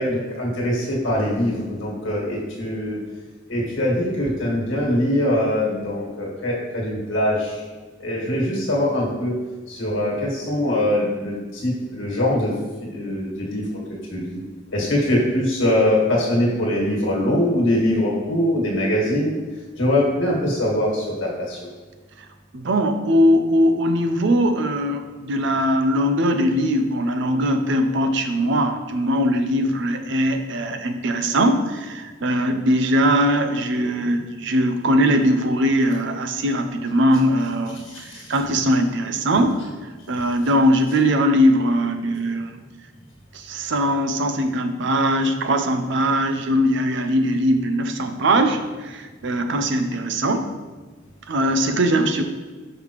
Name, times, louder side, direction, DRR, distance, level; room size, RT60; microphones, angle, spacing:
voice 1, 0.0-3.0 3.5-7.6 8.0-9.3 9.7-12.5 12.8-13.8 14.1-14.4 14.7-19.4 19.8-21.6 37.8-38.2, left 1 dB, 70° left, -4 dB, 1.8 m, -22 dB
voice 2, 22.5-39.7 40.1-42.6 43.3-50.5 51.3-52.2, equal, 65° right, 7 dB, 0.6 m, -20 dB
5.7 x 5.5 x 3.1 m, 1.3 s
head